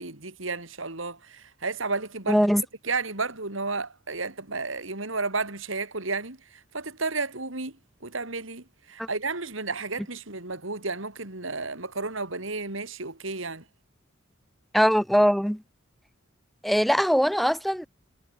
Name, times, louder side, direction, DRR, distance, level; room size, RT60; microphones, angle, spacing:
voice 1, 0.0-2.4 2.9-6.4 6.7-7.8 8.0-13.6, right 3 dB, 70° right, 3.7 m, -32 dB
voice 2, 2.3-2.6 9.0-9.1 14.7-15.6 16.6-17.9, equal, ahead, 4.1 m, -21 dB
head